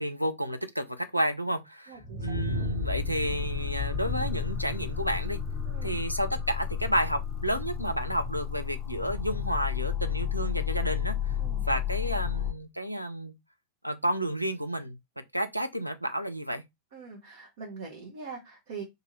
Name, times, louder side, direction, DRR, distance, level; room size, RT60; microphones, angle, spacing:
voice 1, 0.0-5.4 5.8-11.4 11.7-13.3 13.8-15.0 15.3-16.6, equal, 90° right, 0.4 m, -31 dB
voice 2, 1.9-2.4 5.7-6.0 11.4-11.6 16.9-18.8, right 5 dB, 55° right, 0.9 m, -43 dB
sound 1, 2.0-12.5, left 7 dB, 10° left, 0.7 m, -32 dB
2.7 x 2.6 x 4.1 m
figure-of-eight pair, 90°, 0 cm